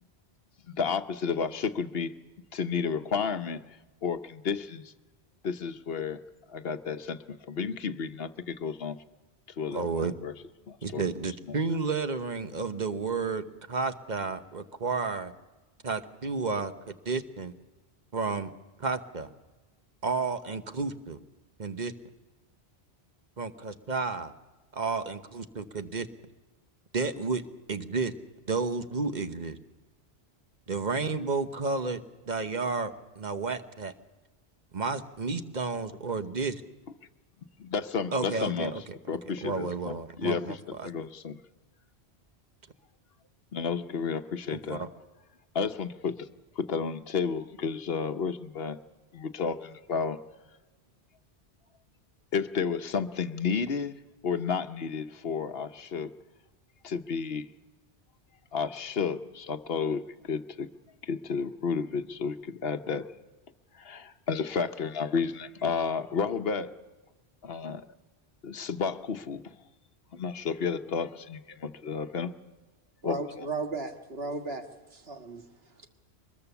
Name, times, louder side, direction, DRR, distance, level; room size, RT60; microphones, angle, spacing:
voice 1, 0.7-2.1 2.5-4.9 5.4-6.2 6.5-9.0 9.6-10.3 10.7-11.0 11.5-11.6 37.6-38.7 39.1-41.4 43.5-44.8 45.5-46.3 46.6-48.8 49.1-50.2 52.3-56.1 56.8-57.5 58.5-60.7 61.0-63.1 63.8-66.7 67.4-67.9 68.4-69.5 70.1-72.3 73.0-73.5, left 5 dB, 65° left, 10 dB, 1.1 m, -32 dB
voice 2, 9.7-10.1 10.8-15.3 15.8-17.5 18.1-18.5 18.8-19.3 20.0-21.2 21.6-21.9 23.4-24.3 24.7-26.1 26.9-27.4 27.7-28.1 28.5-29.6 30.7-33.9 34.7-36.6 38.1-38.8 39.1-40.9 44.5-44.9, right 4 dB, 45° right, 9 dB, 1.1 m, -31 dB
voice 3, 73.0-75.4, right 3 dB, 70° right, 5 dB, 1.9 m, -35 dB
23.5 x 21.0 x 7.0 m, 1.2 s
omnidirectional pair, 1.1 m